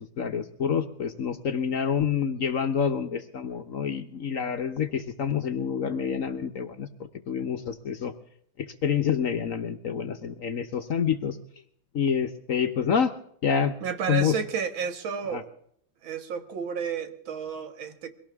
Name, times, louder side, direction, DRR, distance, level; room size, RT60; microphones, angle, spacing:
voice 1, 0.2-6.9 7.3-8.1 8.6-11.4 11.9-13.1 13.4-13.7 14.1-14.3 15.3-15.4, left 7 dB, 55° left, 1.1 m, -27 dB
voice 2, 13.8-15.5 16.0-18.1, right 7 dB, 85° right, 2.2 m, -31 dB
23.0 x 17.5 x 3.5 m
omnidirectional pair, 2.1 m